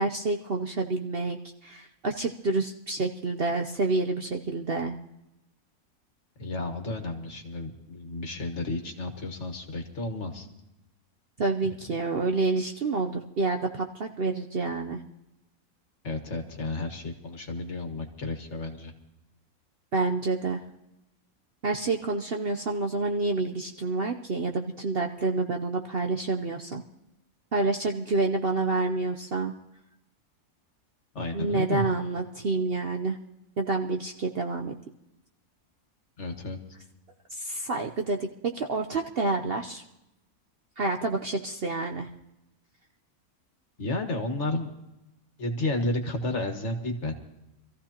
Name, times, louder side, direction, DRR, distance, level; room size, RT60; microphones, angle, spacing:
voice 1, 0.0-5.0 11.4-15.0 19.9-20.6 21.6-26.8 27.5-29.5 31.3-33.2 33.6-34.8 37.3-39.8 40.8-42.1, right 3 dB, 50° right, 3 dB, 0.8 m, -28 dB
voice 2, 6.4-10.5 16.0-18.9 31.2-31.9 36.2-36.6 43.8-44.7 45.4-47.2, left 2 dB, 50° left, 4 dB, 1.8 m, -32 dB
25.5 x 14.5 x 2.9 m, 0.91 s
omnidirectional pair, 1.6 m